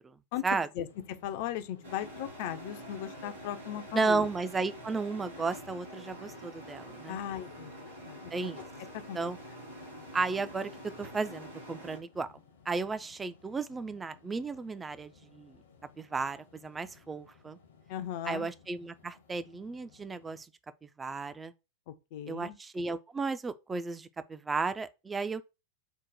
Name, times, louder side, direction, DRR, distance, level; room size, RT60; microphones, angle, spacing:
voice 1, 0.7-4.3 7.1-7.7 8.0-8.3 9.1-9.3 17.9-18.5 21.9-22.6, left 11 dB, 50° left, 0.4 m, -37 dB
sound 1, 0.8-20.4, left 5 dB, 65° left, 0.8 m, -58 dB
sound 2, 1.8-12.0, equal, 75° right, 2.5 m, -46 dB
voice 2, 3.9-7.2 8.3-8.6 9.1-9.4 10.1-10.7 11.0-12.3 12.7-15.5 16.0-17.6 18.3-20.5 20.8-21.5 22.3-25.4, right 4 dB, 15° right, 0.3 m, -34 dB
4.5 x 2.1 x 4.0 m
figure-of-eight pair, 90°, 0 cm